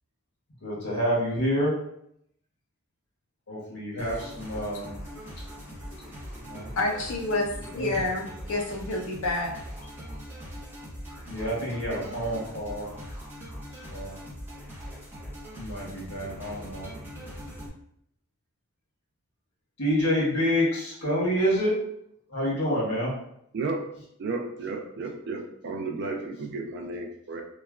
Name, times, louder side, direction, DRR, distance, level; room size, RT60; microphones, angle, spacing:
voice 1, 0.6-1.8 3.5-4.9 6.4-6.7 7.7-7.9 11.3-13.0 13.7-14.2 15.6-16.9 19.8-21.8 22.3-23.1, equal, 85° left, -5 dB, 1.3 m, -28 dB
sound 1, 4.0-17.7, equal, 10° right, 0.7 m, -41 dB
voice 2, 5.3-6.1 6.7-9.5, left 2 dB, 65° left, 1 dB, 0.5 m, -30 dB
voice 3, 23.5-23.9 24.2-27.4, right 3 dB, 50° right, 2 dB, 0.3 m, -33 dB
3.1 x 2.2 x 2.3 m, 0.72 s
head